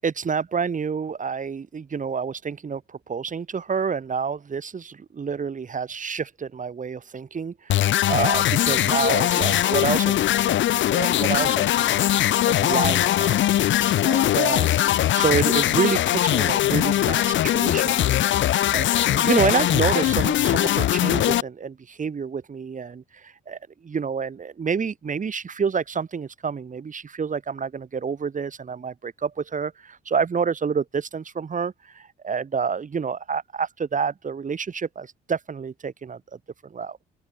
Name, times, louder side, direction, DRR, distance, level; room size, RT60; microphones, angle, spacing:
voice 1, 0.0-12.0 12.4-13.4 14.0-14.8 15.1-18.4 18.7-36.2 36.7-37.0, right 6 dB, 40° right, 3.8 m, -28 dB
sound 1, 7.7-21.4, left 12 dB, 70° left, 1.1 m, -21 dB
open air
cardioid pair, 90°, 20 cm